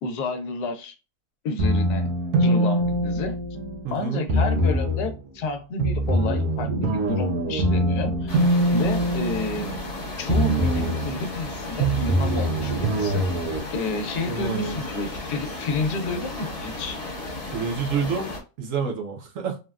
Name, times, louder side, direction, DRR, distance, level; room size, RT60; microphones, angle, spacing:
voice 1, 0.0-0.9 1.4-2.1 2.4-3.4 3.9-8.4 8.7-9.7 10.2-13.2 13.7-17.0, left 3 dB, 85° left, 1.2 m, -30 dB
sound 1, 1.6-3.8 4.3-5.1 5.8-9.9 10.3-11.1 11.8-13.6, right 1 dB, 85° right, 1.2 m, -23 dB
voice 2, 3.8-4.3 14.3-14.8 17.5-19.6, right 5 dB, 65° right, 0.9 m, -28 dB
sound 2, 8.3-18.4, left 2 dB, 35° left, 0.6 m, -34 dB
3.5 x 2.1 x 2.3 m
omnidirectional pair, 1.6 m